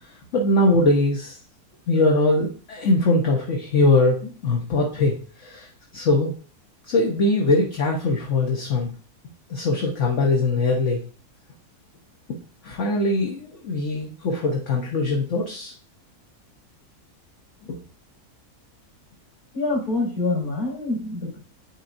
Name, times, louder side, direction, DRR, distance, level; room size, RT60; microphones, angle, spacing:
voice 1, 0.3-1.4 1.9-5.7 5.9-6.3 6.9-8.9 9.5-11.0 12.3-12.4 12.6-15.7 17.6-17.8, left 2 dB, 55° left, -1 dB, 1.4 m, -21 dB
voice 2, 19.5-21.4, left 2 dB, 75° left, -5 dB, 4.0 m, -26 dB
9.8 x 4.4 x 2.7 m, 0.40 s
omnidirectional pair, 1.6 m